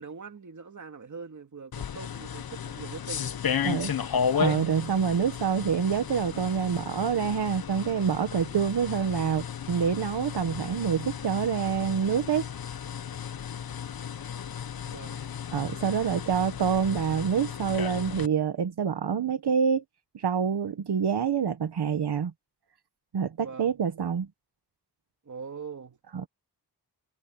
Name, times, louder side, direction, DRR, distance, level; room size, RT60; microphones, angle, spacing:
voice 1, 0.0-3.3 14.8-15.3 23.4-23.7 25.2-26.0, right 5 dB, 45° right, 2.6 m, -42 dB
sound 1, 1.7-18.3, left 7 dB, 60° left, 0.9 m, -34 dB
voice 2, 3.6-3.9 4.3-12.5 15.5-19.8 20.1-22.3 23.1-24.3 26.1-26.3, right 7 dB, 75° right, 1.3 m, -27 dB
wide cardioid pair, 150°, 40 cm